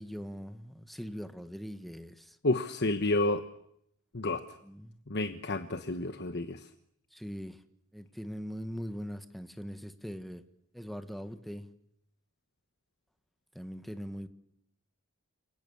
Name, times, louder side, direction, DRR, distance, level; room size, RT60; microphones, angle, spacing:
voice 1, 0.0-2.4 4.3-4.9 7.1-7.6 7.9-10.4 10.7-11.7 13.5-14.3, equal, ahead, 9 dB, 1.5 m, -41 dB
voice 2, 2.4-3.4 4.1-4.4 5.1-6.7, left 2 dB, 50° left, 9 dB, 1.2 m, -30 dB
28.5 x 24.0 x 7.2 m, 0.75 s
head